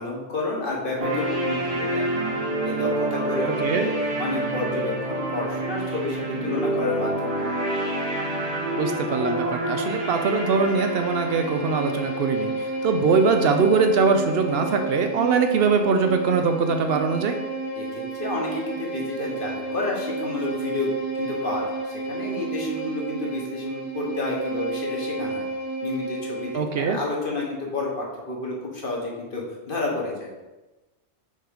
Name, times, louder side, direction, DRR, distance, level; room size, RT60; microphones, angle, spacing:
voice 1, 0.0-2.3 2.6-3.9 4.2-7.4 17.8-17.9 18.2-25.4 25.8-30.3, left 2 dB, 50° left, -2 dB, 1.4 m, -30 dB
sound 1, 1.0-13.0, right 1 dB, 35° right, 1.0 m, -28 dB
voice 2, 3.4-3.9 8.8-17.4 26.5-27.0, right 5 dB, 65° right, 6 dB, 0.7 m, -22 dB
Bowed string instrument, 10.3-26.7, right 3 dB, 75° left, 1.9 m, -31 dB
5.5 x 3.8 x 5.0 m, 1.1 s
omnidirectional pair, 1.2 m